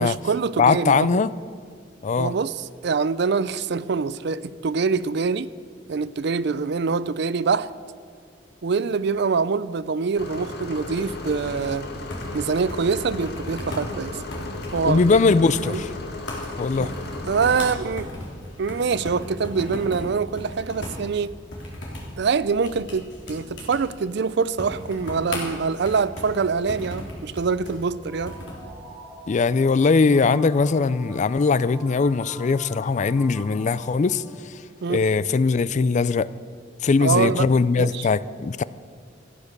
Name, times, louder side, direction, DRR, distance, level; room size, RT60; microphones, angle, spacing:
voice 1, 0.0-1.2 2.2-5.5 5.9-7.7 8.6-11.9 12.3-14.2 14.7-15.8 16.8-16.9 17.3-18.1 18.6-21.3 22.2-28.4 34.8-35.1 37.0-37.5 37.8-38.1, right 5 dB, 60° right, 0.4 m, -25 dB
voice 2, 0.6-1.3 2.0-2.3 14.9-15.9 16.6-16.9 29.3-34.2 34.9-36.3 36.8-38.6, left 4 dB, 40° left, 0.4 m, -20 dB
sound 1, 10.2-17.7, left 2 dB, 60° left, 1.7 m, -35 dB
sound 2, 10.8-28.7, left 1 dB, 75° left, 3.3 m, -37 dB
sound 3, 27.9-34.7, equal, ahead, 4.0 m, -45 dB
14.0 x 9.6 x 6.6 m
head